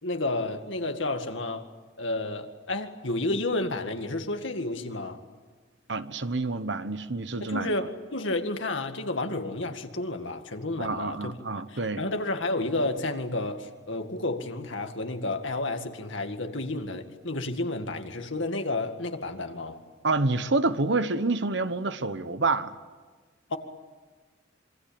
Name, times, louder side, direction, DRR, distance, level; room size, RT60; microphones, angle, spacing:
voice 1, 0.0-1.7 2.0-5.2 7.4-11.3 11.7-19.8 23.5-23.6, left 2 dB, 70° left, 2.1 m, -31 dB
voice 2, 5.9-7.7 10.8-12.0 20.0-22.8, right 3 dB, 60° right, 1.1 m, -28 dB
27.0 x 23.0 x 8.7 m
head